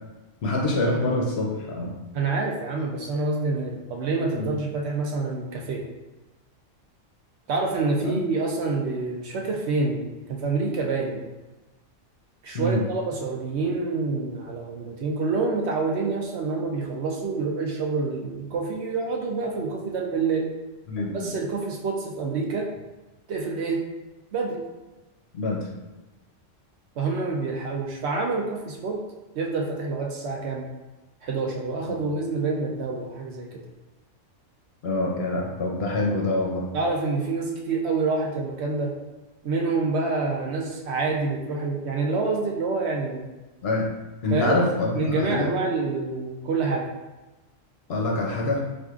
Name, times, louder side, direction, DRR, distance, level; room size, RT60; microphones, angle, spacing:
voice 1, 0.4-1.9 4.3-4.5 8.0-8.2 12.5-12.8 20.9-21.3 25.3-25.7 31.9-32.0 34.8-36.7 43.6-43.9 44.2-45.5 47.9-48.6, left 2 dB, 60° left, -1 dB, 0.7 m, -25 dB
voice 2, 2.1-5.8 7.5-11.2 12.4-20.5 21.1-22.7 23.3-23.8 24.3-24.6 27.0-29.0 29.4-30.7 31.2-33.6 36.7-38.9 39.4-43.2 44.3-44.6 44.9-46.9, right 3 dB, 65° right, 0 dB, 0.8 m, -27 dB
4.4 x 2.5 x 2.4 m, 1.1 s
omnidirectional pair, 1.3 m